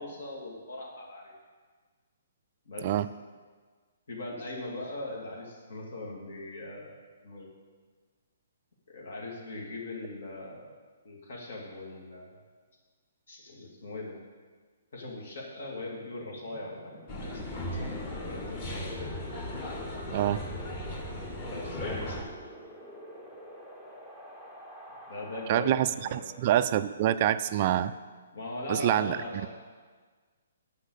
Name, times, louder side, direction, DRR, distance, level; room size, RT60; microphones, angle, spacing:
voice 1, 0.0-1.4 2.7-2.9 4.1-6.9 7.2-7.5 8.9-10.7 11.0-12.4 13.3-14.2 14.9-17.4 18.2-19.1 21.4-22.2 25.1-25.7 26.0-26.2 28.3-29.5, left 2 dB, 60° left, -3 dB, 2.5 m, -40 dB
Wind, 15.6-25.7, equal, 10° left, 0.9 m, -48 dB
sound 1, 17.1-22.2, left 1 dB, 25° left, 1.7 m, -37 dB
voice 2, 25.5-27.9 28.7-29.5, right 12 dB, 30° right, 13 dB, 0.3 m, -26 dB
9.8 x 5.7 x 8.2 m, 1.5 s
hypercardioid pair, 175°, 0 cm